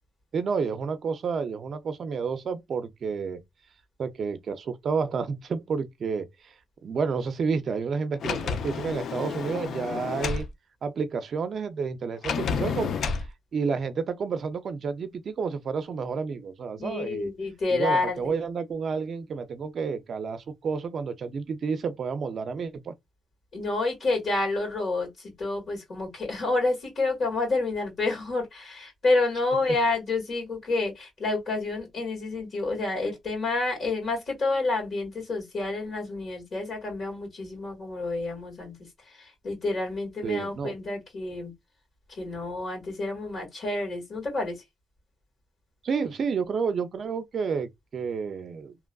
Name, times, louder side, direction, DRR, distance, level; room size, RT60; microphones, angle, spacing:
voice 1, 0.3-3.4 4.0-6.5 6.8-10.5 10.8-13.0 13.5-17.3 17.7-22.9 40.2-40.8 45.8-48.8, right 5 dB, 55° right, 0.4 m, -30 dB
Sliding door, 8.2-10.5 12.2-13.3, left 6 dB, 70° left, 0.4 m, -30 dB
voice 2, 16.8-18.3 23.5-38.7 39.2-41.5 42.1-44.6, left 3 dB, 55° left, 1.8 m, -29 dB
2.9 x 2.4 x 2.2 m
cardioid pair, 120°, 0 cm